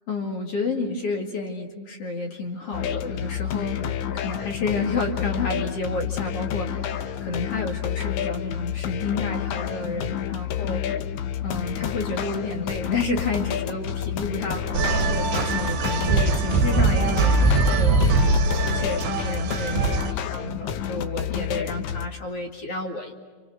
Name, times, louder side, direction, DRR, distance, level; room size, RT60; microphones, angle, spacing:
voice 1, 0.1-10.8 11.4-20.0 20.3-23.1, left 3 dB, 40° left, 2 dB, 2.8 m, -30 dB
sound 1, 2.7-22.1, left 9 dB, 65° left, 1.9 m, -30 dB
sound 2, 14.7-20.1, right 3 dB, 70° right, 3.6 m, -22 dB
28.5 x 28.5 x 6.4 m, 1.5 s
omnidirectional pair, 4.5 m